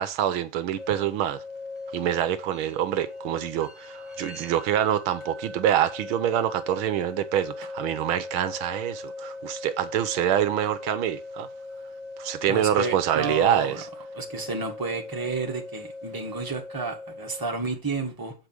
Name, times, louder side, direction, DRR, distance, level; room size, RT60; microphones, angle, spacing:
voice 1, 0.0-1.4 1.9-11.5 12.2-13.9, right 10 dB, 80° right, 1.6 m, -26 dB
sound 1, 0.8-17.5, left 3 dB, 25° left, 0.6 m, -40 dB
voice 2, 12.5-13.8 14.1-18.3, right 3 dB, 10° right, 1.5 m, -31 dB
8.1 x 5.1 x 6.1 m
omnidirectional pair, 2.3 m